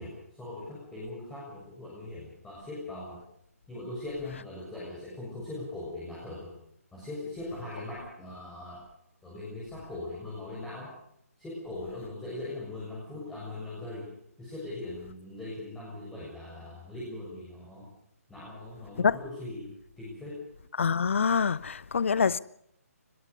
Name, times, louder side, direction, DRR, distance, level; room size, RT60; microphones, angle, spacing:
voice 1, 0.0-3.2 3.7-6.5 6.9-8.8 9.2-11.0 11.4-14.1 14.4-17.9 18.3-20.4, left 2 dB, 5° left, 7.0 m, -40 dB
voice 2, 20.8-22.4, left 6 dB, 50° left, 0.9 m, -25 dB
22.0 x 21.5 x 6.9 m
figure-of-eight pair, 140°, 8 cm